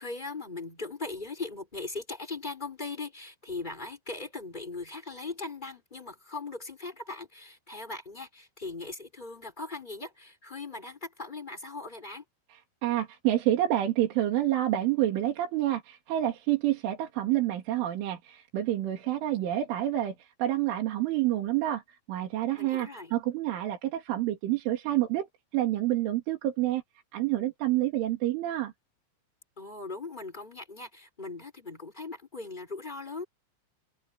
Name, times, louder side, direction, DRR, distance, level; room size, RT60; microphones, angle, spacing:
voice 1, 0.0-12.2 22.5-23.1 29.6-33.2, left 3 dB, 10° left, 3.5 m, -39 dB
voice 2, 12.5-26.8 27.1-28.7, right 13 dB, 70° right, 5.0 m, -28 dB
open air
omnidirectional pair, 5.9 m